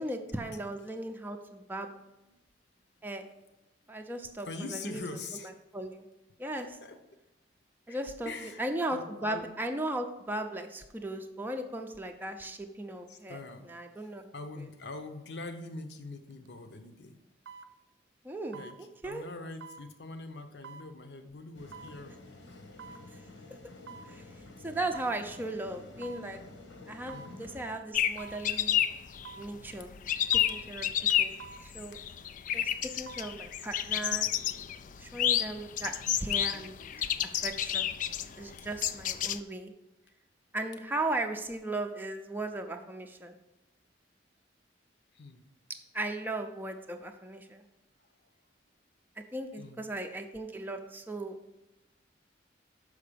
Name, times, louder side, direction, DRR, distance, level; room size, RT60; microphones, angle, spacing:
voice 1, 0.0-1.9 3.0-3.2 3.9-5.0 5.3-6.0 6.4-6.7 7.9-8.3 8.6-13.4 13.7-14.3 14.6-14.7 18.2-19.2 24.1-24.2 24.6-26.4 26.9-28.8 29.4-30.9 31.2-31.3 31.6-32.0 32.5-34.3 35.0-36.9 37.2-37.9 38.4-39.7 40.5-43.4 45.9-47.6 49.3-51.4, right 2 dB, 10° right, 4 dB, 0.6 m, -37 dB
voice 2, 4.4-5.5 6.6-7.0 7.9-8.0 8.2-8.6 8.9-9.5 13.1-13.7 14.0-17.2 18.5-18.7 19.0-22.2 22.4-22.7 27.1-27.5 31.1-31.2 31.9-32.0 38.6-38.7 45.1-45.5 49.6-49.9, left 3 dB, 65° left, 7 dB, 0.9 m, -43 dB
sound 1, 16.3-16.5 17.5-17.7 18.5-18.8 19.6-19.9 20.6-20.9 21.7-22.0 22.8-23.0 23.9-24.1 24.9-25.2 26.0-26.3 27.1-27.3 28.2-28.4 29.2-29.5 30.3-30.6 31.4-31.7 32.8-33.3 33.7-33.8, right 6 dB, 75° right, 0.5 m, -47 dB
sound 2, 21.5-27.8, left 2 dB, 80° left, 1.3 m, -50 dB
sound 3, 27.9-39.4, left 10 dB, 45° left, 0.3 m, -30 dB
6.5 x 5.0 x 6.8 m, 0.95 s
head